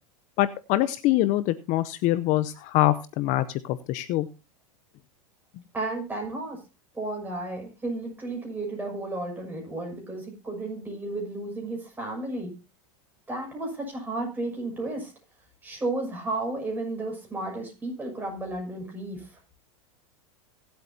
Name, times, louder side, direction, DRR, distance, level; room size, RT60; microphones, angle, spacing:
voice 1, 0.4-4.3, left 15 dB, 45° left, 14 dB, 0.7 m, -24 dB
voice 2, 5.7-6.6 6.9-12.5 13.3-15.1 15.6-19.4, right 2 dB, 10° right, 0 dB, 6.5 m, -33 dB
23.5 x 8.1 x 2.7 m, 0.28 s
supercardioid pair, 125°, 17 cm